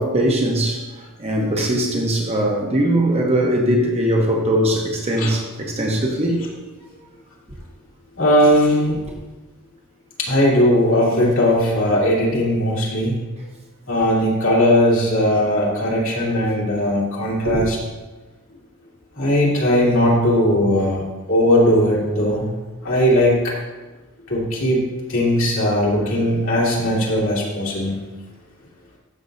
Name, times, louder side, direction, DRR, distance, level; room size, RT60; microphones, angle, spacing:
voice 1, 0.0-6.5 17.4-17.7, right 1 dB, 30° right, 0.9 m, -20 dB
voice 2, 8.2-9.0 10.2-13.2 13.9-17.8 19.2-22.5 22.8-23.6 24.3-28.0, equal, 60° left, 2.7 m, -18 dB
13.5 x 6.0 x 2.6 m
head